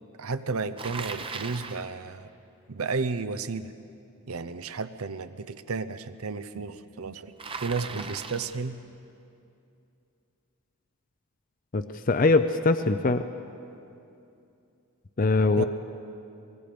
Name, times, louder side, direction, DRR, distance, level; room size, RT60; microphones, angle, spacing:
voice 1, 0.2-2.3 2.7-3.7 4.3-7.3 7.6-8.8 15.6-15.7, right 4 dB, 80° right, 13 dB, 0.8 m, -32 dB
Bicycle, 0.8-1.9 7.4-8.7, right 4 dB, 25° right, 0.7 m, -38 dB
voice 2, 11.7-13.2 15.2-15.6, left 3 dB, 40° left, 9 dB, 0.5 m, -22 dB
24.0 x 21.5 x 5.2 m, 2.6 s
head